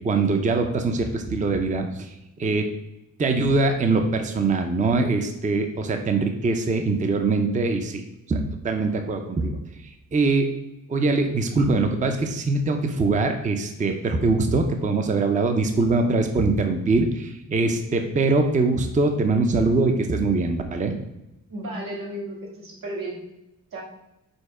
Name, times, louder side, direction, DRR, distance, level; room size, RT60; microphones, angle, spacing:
voice 1, 0.0-2.7 3.2-8.0 8.3-10.5 10.9-21.0, right 3 dB, 25° right, 5 dB, 0.5 m, -23 dB
voice 2, 21.5-23.2 23.7-23.8, right 1 dB, 85° right, -3 dB, 2.0 m, -33 dB
5.3 x 4.2 x 4.7 m, 0.90 s
wide cardioid pair, 160°, 33 cm